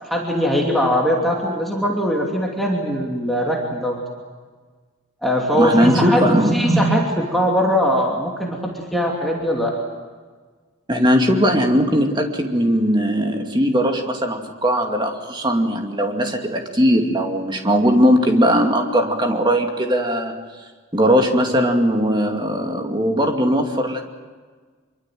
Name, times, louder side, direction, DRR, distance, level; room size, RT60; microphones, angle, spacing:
voice 1, 0.0-4.0 5.2-9.7, equal, ahead, -2 dB, 2.9 m, -20 dB
voice 2, 5.5-6.5 10.9-20.4 20.9-24.0, equal, 20° right, 3 dB, 2.4 m, -19 dB
25.0 x 23.5 x 7.7 m, 1.5 s
head